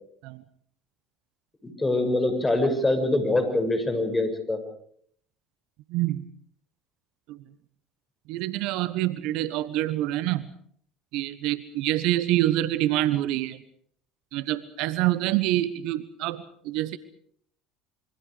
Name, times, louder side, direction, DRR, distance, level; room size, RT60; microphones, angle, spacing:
voice 1, 1.6-4.6, left 2 dB, 15° left, 7 dB, 6.7 m, -24 dB
voice 2, 5.9-6.3 7.3-7.4 8.3-10.5 11.1-13.6 14.3-17.0, right 15 dB, 65° right, 16 dB, 1.1 m, -26 dB
27.0 x 24.5 x 5.0 m, 0.62 s
hypercardioid pair, 65°, 0 cm